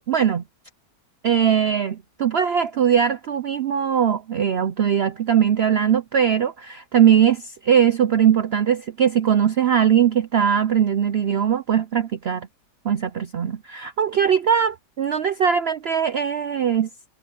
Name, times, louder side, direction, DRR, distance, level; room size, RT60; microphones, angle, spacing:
voice 1, 0.1-0.4 1.2-12.5 12.8-16.9, right 8 dB, 90° right, 0.5 m, -20 dB
omnidirectional pair, 1.8 m